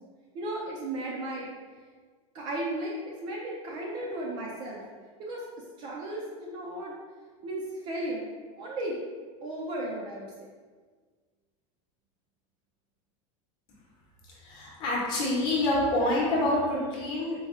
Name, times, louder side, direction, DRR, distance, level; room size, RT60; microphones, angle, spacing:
voice 1, 0.3-1.5 2.3-4.8 5.2-6.9 7.4-8.3 8.6-9.0 9.4-10.3, right 1 dB, 30° right, -3 dB, 0.4 m, -35 dB
voice 2, 14.4-17.3, left 1 dB, 30° left, -4 dB, 0.9 m, -27 dB
4.1 x 2.2 x 3.6 m, 1.5 s
supercardioid pair, 180°, 16 cm